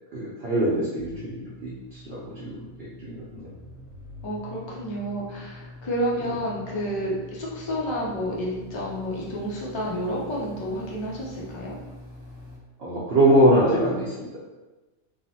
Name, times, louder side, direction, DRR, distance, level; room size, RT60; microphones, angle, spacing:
voice 1, 0.1-3.2 6.2-6.3 12.8-14.4, right 1 dB, 60° right, -8 dB, 0.8 m, -23 dB
sound 1, 1.0-12.6, left 2 dB, 65° left, 1.5 m, -44 dB
voice 2, 4.2-11.8, equal, 40° left, -4 dB, 0.4 m, -30 dB
3.1 x 2.1 x 2.7 m, 1.2 s
omnidirectional pair, 1.3 m